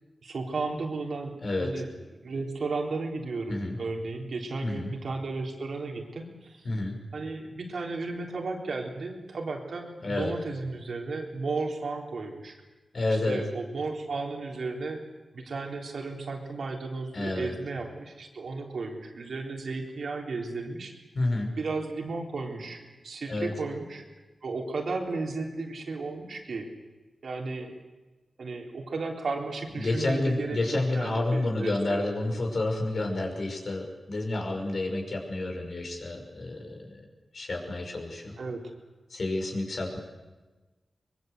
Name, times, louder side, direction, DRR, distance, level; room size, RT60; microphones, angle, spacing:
voice 1, 0.2-1.9 2.2-6.7 7.1-12.6 13.1-15.1 15.3-21.0 21.6-24.0 24.4-26.7 27.2-27.8 28.4-30.6 30.9-32.2 38.4-38.7, right 3 dB, 70° right, 1 dB, 3.8 m, -34 dB
voice 2, 10.0-10.3 12.9-13.4 17.1-17.5 21.2-21.5 23.3-23.5 29.7-37.0 37.3-38.3 39.1-40.0, left 2 dB, 55° left, 3 dB, 5.6 m, -29 dB
23.0 x 22.5 x 8.1 m, 1.2 s
wide cardioid pair, 95°, 0 cm